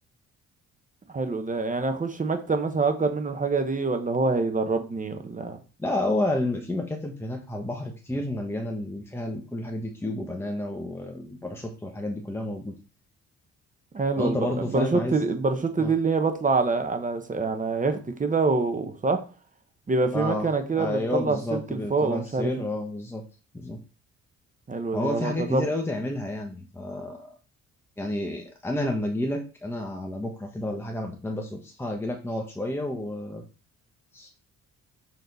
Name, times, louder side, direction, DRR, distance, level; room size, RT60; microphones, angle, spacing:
voice 1, 1.1-5.6 13.9-14.4 14.7-19.2 19.9-22.6 24.7-25.6, right 3 dB, 25° right, 6 dB, 1.0 m, -26 dB
voice 2, 5.8-12.8 14.2-15.2 15.8-15.9 20.1-20.5 20.8-23.2 23.5-23.8 24.9-27.4 28.0-33.4 34.1-34.3, left 1 dB, 10° left, 2 dB, 1.1 m, -30 dB
6.4 x 4.0 x 4.1 m, 0.35 s
cardioid pair, 90°, 30 cm